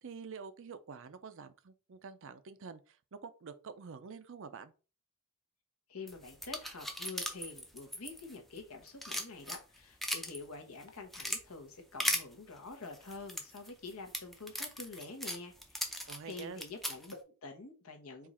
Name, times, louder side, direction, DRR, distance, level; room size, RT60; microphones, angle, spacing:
voice 1, 0.0-4.7 16.1-16.6, right 5 dB, 60° right, 0.5 m, -47 dB
voice 2, 5.9-18.3, left 3 dB, 75° left, 1.1 m, -47 dB
sound 1, 6.1-8.6 8.9-10.4 10.8-11.4 12.0-12.2 12.9-17.1, equal, ahead, 0.5 m, -37 dB
4.7 x 2.5 x 4.2 m
head